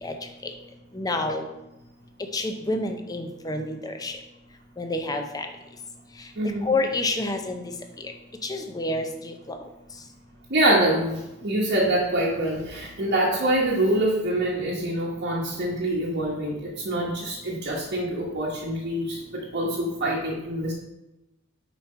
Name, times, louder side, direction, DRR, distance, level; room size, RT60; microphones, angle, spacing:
voice 1, 1.0-1.4 2.3-4.1 4.8-5.5 6.7-7.6 8.5-9.6, left 2 dB, 15° left, 5 dB, 0.5 m, -28 dB
voice 2, 6.4-6.7 10.5-20.7, right 1 dB, 50° right, -5 dB, 1.1 m, -25 dB
5.4 x 4.6 x 4.3 m, 0.95 s
head